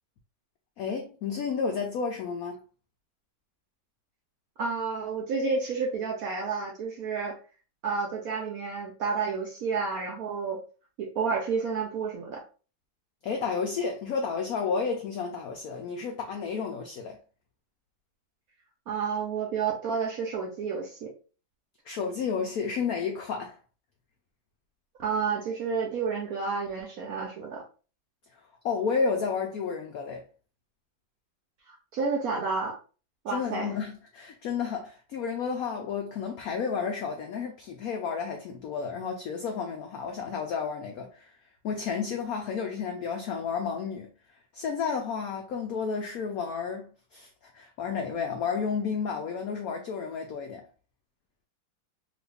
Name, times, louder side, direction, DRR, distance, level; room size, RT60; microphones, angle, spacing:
voice 1, 0.8-2.6 13.2-17.2 21.9-23.6 28.3-28.4 28.6-30.2 33.3-41.3 41.6-44.1 44.5-50.7, left 5 dB, 85° left, 0.7 m, -31 dB
voice 2, 4.6-7.4 7.8-10.6 11.0-12.4 18.9-21.1 25.0-27.6 31.9-32.8 33.2-33.7, right 5 dB, 70° right, 0.8 m, -30 dB
3.0 x 2.5 x 3.3 m
omnidirectional pair, 2.1 m